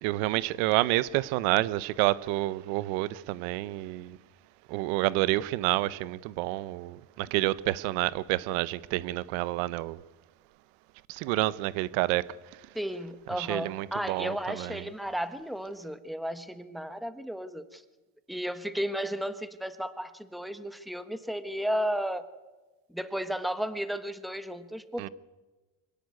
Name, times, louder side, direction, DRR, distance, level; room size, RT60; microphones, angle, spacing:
voice 1, 0.0-4.1 4.7-10.0 11.2-12.3 13.4-14.3 25.0-25.1, right 18 dB, 85° right, 0.9 m, -28 dB
voice 2, 12.7-17.8 18.3-22.2 22.9-25.1, equal, ahead, 1.1 m, -34 dB
24.5 x 17.0 x 9.6 m
cardioid pair, 155°, 37 cm